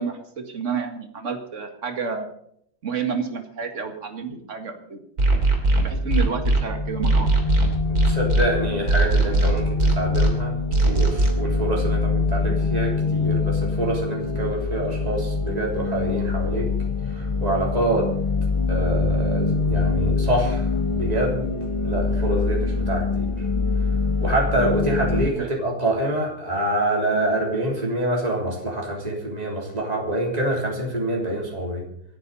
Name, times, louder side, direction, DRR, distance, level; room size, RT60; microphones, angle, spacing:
voice 1, 0.0-2.3 2.8-5.0 5.8-7.3 25.4-25.5, right 5 dB, 55° right, 5 dB, 2.2 m, -30 dB
sound 1, 5.2-6.6 7.0-8.4 8.9-10.3 10.7-11.3, right 2 dB, 85° right, 3.4 m, -18 dB
sound 2, 5.8-25.3, left 4 dB, 30° left, 0.6 m, -25 dB
voice 2, 7.8-10.5 10.8-16.7 17.1-18.1 18.7-21.5 21.8-23.5 24.2-31.8, right 1 dB, 25° right, -2 dB, 3.5 m, -26 dB
27.5 x 9.7 x 4.2 m, 0.72 s
omnidirectional pair, 1.6 m